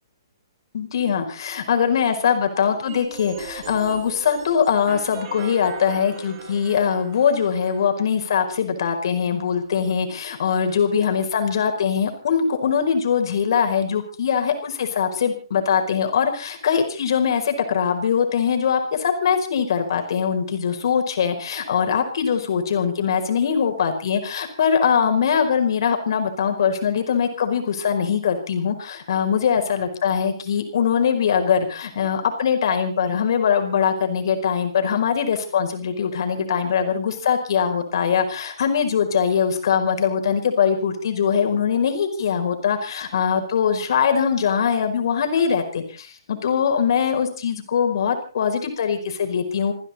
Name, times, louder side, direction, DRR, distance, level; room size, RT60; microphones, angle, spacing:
voice 1, 0.7-49.7, left 7 dB, 65° left, 6 dB, 4.9 m, -22 dB
sound 1, 2.9-7.9, right 6 dB, 40° right, 6.8 m, -39 dB
29.5 x 11.0 x 4.3 m, 0.37 s
hypercardioid pair, 145°, 3 cm